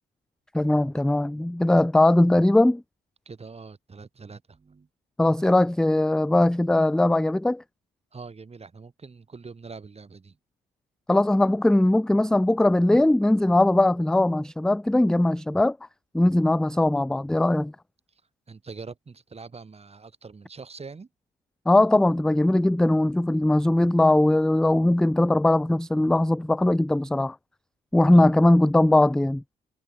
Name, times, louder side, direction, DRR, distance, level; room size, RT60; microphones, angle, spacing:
voice 1, 0.5-2.8 5.2-7.6 11.1-15.8 16.1-17.7 21.7-27.4 27.9-29.4, left 1 dB, 5° left, 0.3 m, -20 dB
voice 2, 3.3-4.9 8.1-10.4 18.5-21.1 28.1-28.3, right 4 dB, 30° right, 5.3 m, -43 dB
cardioid pair, 90°, 20 cm